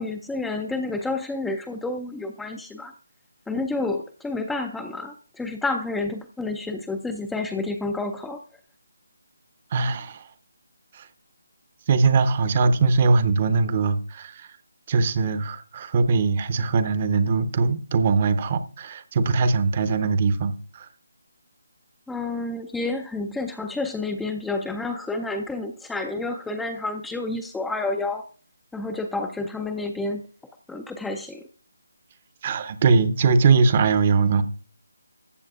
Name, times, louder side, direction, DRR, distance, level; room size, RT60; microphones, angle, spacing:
voice 1, 0.0-2.9 3.5-8.4 22.1-28.2 28.7-30.3 30.7-31.4, left 2 dB, 5° left, 0.4 m, -29 dB
voice 2, 9.7-10.2 11.9-14.5 14.9-20.9 32.4-34.4, right 4 dB, 35° right, 0.7 m, -21 dB
14.0 x 7.5 x 2.4 m
figure-of-eight pair, 160°, 0 cm